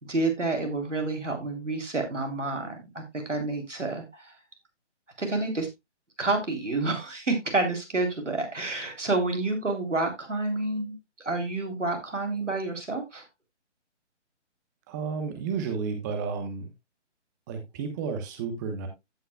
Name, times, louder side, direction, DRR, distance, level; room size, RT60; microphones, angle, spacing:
voice 1, 0.0-4.3 5.2-5.7 6.2-13.2, right 3 dB, 85° right, 4 dB, 3.2 m, -29 dB
voice 2, 14.9-16.7 17.5-18.9, right 5 dB, 15° right, 6 dB, 1.0 m, -32 dB
15.0 x 5.6 x 2.2 m, 0.20 s
figure-of-eight pair, 145°, 36 cm